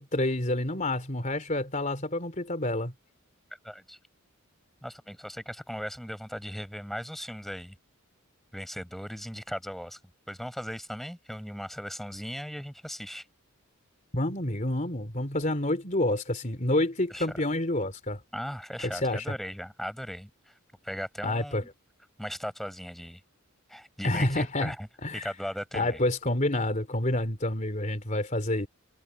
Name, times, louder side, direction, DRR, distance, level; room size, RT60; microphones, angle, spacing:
voice 1, 0.0-2.9 14.1-18.2 18.8-19.2 21.2-21.6 24.0-24.7 25.0-25.3 25.7-28.7, left 1 dB, 35° left, 3.4 m, -28 dB
voice 2, 3.6-4.0 4.8-7.8 8.5-10.0 10.3-13.3 17.1-17.3 18.3-20.6 20.8-21.7 22.2-23.2 23.7-24.9 25.1-26.0, equal, ahead, 6.2 m, -38 dB
head